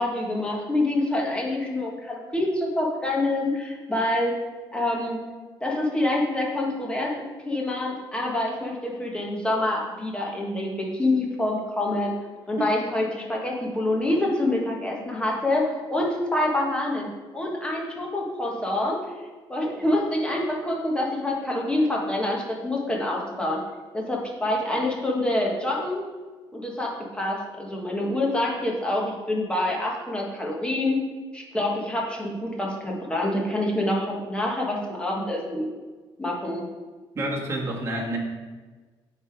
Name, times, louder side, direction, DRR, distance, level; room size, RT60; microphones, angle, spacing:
voice 1, 0.0-4.3 4.7-5.2 5.6-12.1 12.5-17.1 17.3-19.0 19.5-23.6 23.9-26.0 26.5-31.0 31.3-35.7 36.2-36.6, left 1 dB, 10° left, -2 dB, 1.4 m, -26 dB
voice 2, 37.1-38.2, right 1 dB, 30° right, -2 dB, 1.5 m, -28 dB
8.6 x 3.5 x 4.6 m, 1.3 s
cardioid pair, 120°, 9 cm